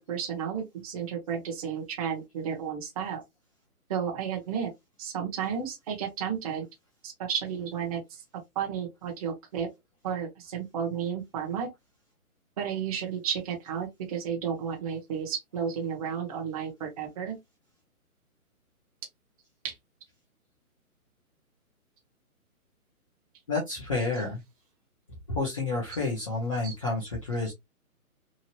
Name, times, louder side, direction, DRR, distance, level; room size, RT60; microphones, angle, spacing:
voice 1, 0.0-3.2 3.9-4.7 5.0-6.6 7.0-8.2 8.6-9.7 10.0-11.7 12.6-17.3 19.6-19.7 26.6-26.7, right 7 dB, 25° right, 0.8 m, -32 dB
voice 2, 23.5-24.4 25.3-27.5, left 3 dB, 25° left, 0.5 m, -30 dB
2.9 x 2.4 x 2.8 m
hypercardioid pair, 155°, 44 cm